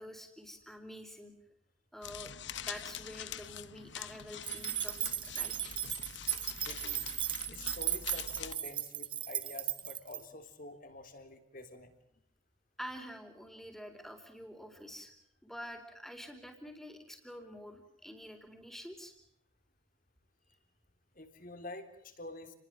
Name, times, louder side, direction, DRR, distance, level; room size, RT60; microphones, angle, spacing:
voice 1, 0.0-1.3 1.9-2.4 2.7-5.8 12.8-15.1 15.4-19.1 20.5-20.6, equal, ahead, 5 dB, 4.2 m, -47 dB
sound 1, 2.0-8.5, left 8 dB, 60° left, 1.1 m, -45 dB
sound 2, 4.4-10.2, right 10 dB, 25° right, 1.1 m, -36 dB
voice 2, 6.6-7.1 7.5-11.9 21.2-22.5, left 2 dB, 40° left, 8 dB, 3.6 m, -48 dB
29.5 x 21.0 x 7.7 m, 0.73 s
head